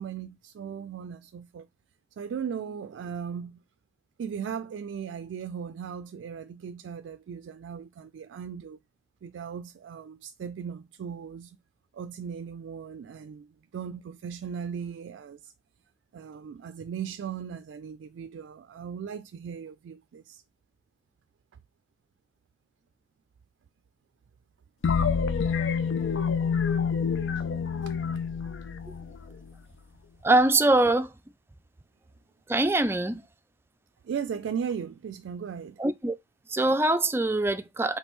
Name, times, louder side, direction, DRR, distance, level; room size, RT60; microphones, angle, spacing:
voice 1, 0.0-1.7 2.2-3.6 4.2-8.8 9.2-11.6 11.9-15.5 16.1-20.4 27.4-27.5 27.8-28.0 34.0-35.8, right 7 dB, 90° right, 0.3 m, -37 dB
fade down echo psycedelic e, 24.8-29.5, left 6 dB, 85° left, 0.5 m, -27 dB
voice 2, 30.2-31.1 32.5-33.2 35.8-36.2 36.5-38.0, right 2 dB, 15° right, 0.3 m, -23 dB
5.2 x 3.4 x 3.0 m
head